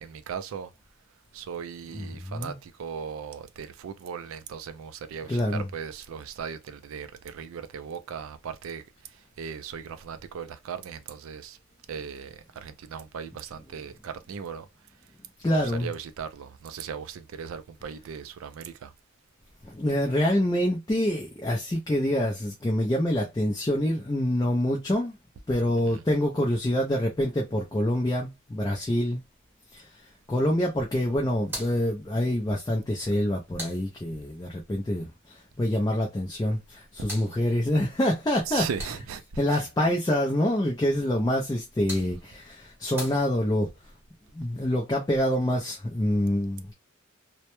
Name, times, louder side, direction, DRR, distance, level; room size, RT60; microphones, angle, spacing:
voice 1, 0.0-0.7 1.3-8.8 9.4-11.6 11.9-14.7 15.5-18.9 25.9-26.0 38.5-39.2 39.5-39.6, right 7 dB, 80° right, 0.3 m, -38 dB
voice 2, 1.9-2.6 5.3-5.7 15.4-15.9 19.6-25.1 25.5-29.2 29.7-29.9 30.3-38.6 39.4-43.7 44.3-46.7, left 1 dB, 15° left, 0.3 m, -26 dB
sound 1, 31.4-34.5 36.5-39.4 41.4-43.8, equal, 10° right, 0.8 m, -44 dB
2.1 x 2.0 x 2.9 m
head